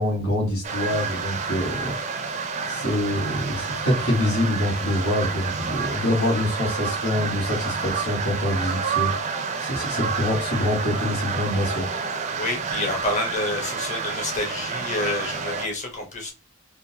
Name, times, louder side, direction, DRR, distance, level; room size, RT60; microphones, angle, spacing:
voice 1, 0.0-2.0 2.7-11.9, left 1 dB, 90° left, 1.5 m, -25 dB
sound 1, 0.6-15.7, right 5 dB, 35° right, 0.4 m, -29 dB
voice 2, 12.3-16.3, left 2 dB, 35° left, 1.1 m, -28 dB
3.7 x 2.5 x 2.7 m
head